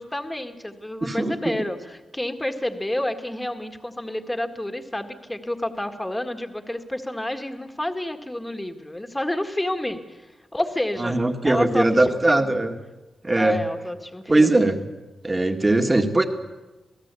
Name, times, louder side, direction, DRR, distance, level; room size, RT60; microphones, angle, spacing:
voice 1, 0.0-11.2 11.4-12.5 13.3-14.6, left 1 dB, 10° left, 6 dB, 1.8 m, -29 dB
voice 2, 1.0-1.4 11.0-12.7 13.2-13.6 14.3-14.8 15.2-16.3, right 2 dB, 20° right, 5 dB, 1.9 m, -20 dB
28.0 x 18.5 x 8.4 m, 1.1 s
wide cardioid pair, 165°, 0 cm